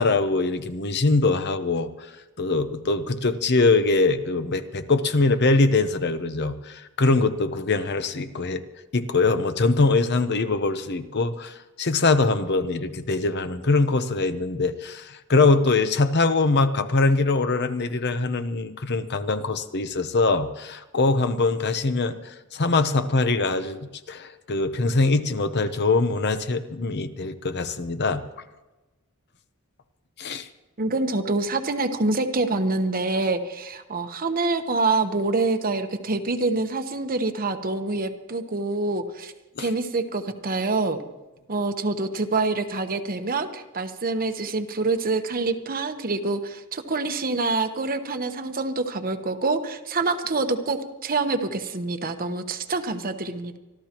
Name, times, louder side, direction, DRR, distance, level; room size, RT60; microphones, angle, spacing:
voice 1, 0.0-1.9 2.4-8.6 8.9-28.2 30.2-30.5 39.6-39.7, left 3 dB, 50° left, 10 dB, 0.8 m, -23 dB
voice 2, 30.8-39.3 39.6-41.0 41.5-53.6, right 3 dB, 40° right, 7 dB, 1.0 m, -26 dB
25.5 x 13.5 x 3.0 m, 1.1 s
head